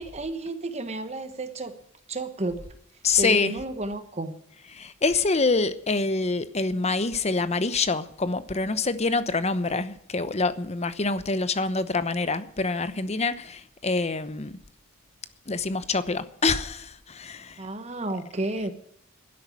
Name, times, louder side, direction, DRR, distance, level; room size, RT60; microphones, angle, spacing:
voice 1, 0.0-1.7 2.1-2.7 3.2-4.4 17.6-18.7, right 2 dB, 30° right, 1.1 m, -31 dB
voice 2, 3.0-3.5 4.7-14.6 15.5-17.6, left 3 dB, 30° left, 0.9 m, -26 dB
12.0 x 10.5 x 8.5 m
head